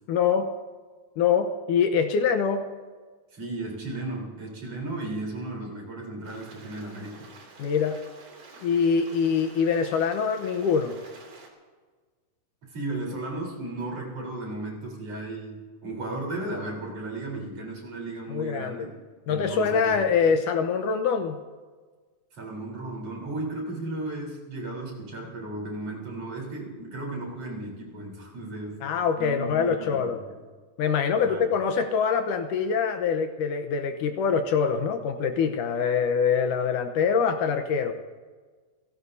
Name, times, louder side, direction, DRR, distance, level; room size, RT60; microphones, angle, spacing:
voice 1, 0.1-0.5 1.2-2.7 7.6-8.0 8.6-11.0 18.3-18.9 19.3-21.4 28.8-30.2 30.8-37.9, left 6 dB, 75° left, 7 dB, 2.3 m, -24 dB
voice 2, 3.3-7.3 12.7-19.0 19.3-20.0 22.3-28.8 29.2-30.3 31.2-31.5, right 2 dB, 45° right, -2 dB, 4.8 m, -35 dB
Stream, 6.2-11.5, right 3 dB, 75° right, 4.5 m, -49 dB
29.5 x 17.5 x 2.7 m, 1.4 s
omnidirectional pair, 3.9 m